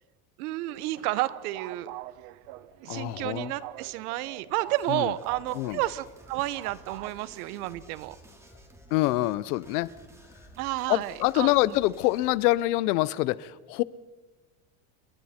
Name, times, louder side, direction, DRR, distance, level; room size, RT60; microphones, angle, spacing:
voice 1, 0.4-1.9 2.8-8.2 10.6-11.5, right 16 dB, 80° right, 16 dB, 1.2 m, -31 dB
sound 1, 0.7-7.1, right 17 dB, 45° right, 0.6 m, -44 dB
sound 2, 1.9-12.8, left 8 dB, 65° left, 3.7 m, -61 dB
voice 2, 2.9-3.5 4.9-5.1 5.5-5.8 8.9-9.9 10.9-13.8, left 18 dB, 85° left, 19 dB, 0.9 m, -25 dB
sound 3, 4.7-12.6, right 1 dB, 5° right, 2.6 m, -53 dB
29.0 x 23.5 x 4.4 m, 1.2 s
cardioid pair, 180°, 44 cm